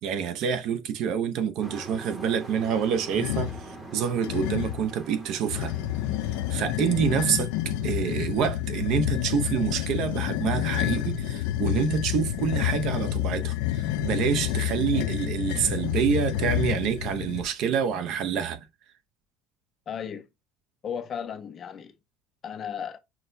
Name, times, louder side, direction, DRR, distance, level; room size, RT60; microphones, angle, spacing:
voice 1, 0.0-3.5 3.9-5.7 6.5-7.5 7.8-18.6, right 7 dB, 50° right, 0.6 m, -27 dB
Truck, 1.6-8.3, right 2 dB, 15° right, 0.9 m, -44 dB
sound 1, 3.1-3.6 4.2-4.9 5.5-17.5, left 13 dB, 85° left, 0.5 m, -29 dB
voice 2, 19.9-20.3 20.8-21.9 22.4-23.0, left 7 dB, 30° left, 0.5 m, -35 dB
5.9 x 2.1 x 2.6 m
cardioid pair, 165°, 0 cm